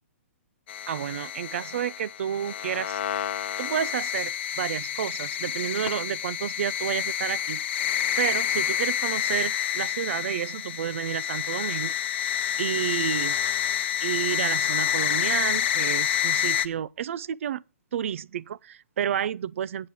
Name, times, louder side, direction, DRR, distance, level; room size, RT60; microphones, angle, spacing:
sound 1, 0.7-16.7, left 10 dB, 50° left, 0.8 m, -28 dB
voice 1, 0.9-3.0 3.6-7.6 8.2-11.9 12.6-13.4 14.0-17.6 17.9-19.9, right 9 dB, 65° right, 0.5 m, -30 dB
8.6 x 8.2 x 6.1 m
hypercardioid pair, 160°, 8 cm